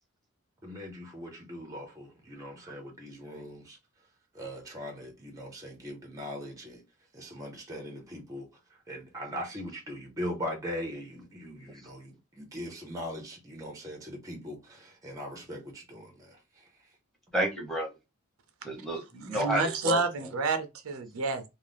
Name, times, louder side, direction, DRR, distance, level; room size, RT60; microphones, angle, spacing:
voice 1, 0.6-3.8 4.3-6.8 7.1-8.5 8.9-16.4, equal, 15° right, 0.6 m, -40 dB
voice 2, 17.3-17.9 18.6-20.3, equal, ahead, 1.0 m, -31 dB
voice 3, 19.3-21.4, right 3 dB, 80° right, 0.6 m, -29 dB
2.5 x 2.0 x 3.3 m
head